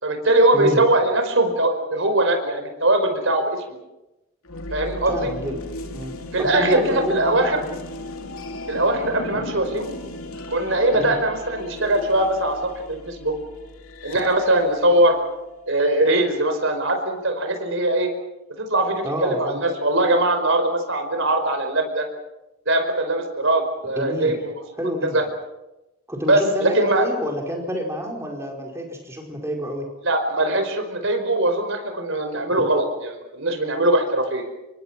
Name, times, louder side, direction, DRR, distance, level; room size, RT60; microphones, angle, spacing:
voice 1, 0.0-3.8 4.7-5.3 6.3-7.6 8.7-9.9 10.5-13.3 14.0-15.2 15.7-18.1 18.6-22.1 22.7-24.6 25.0-25.2 26.3-27.0 30.0-34.4, right 1 dB, 60° right, 6 dB, 4.9 m, -21 dB
sound 1, 4.4-16.3, left 1 dB, 80° left, 2.5 m, -36 dB
voice 2, 5.1-7.6 10.9-11.2 19.0-19.6 23.9-24.4 24.8-25.2 26.1-29.9, equal, 10° right, 1 dB, 5.0 m, -28 dB
27.0 x 23.5 x 6.1 m, 0.96 s
head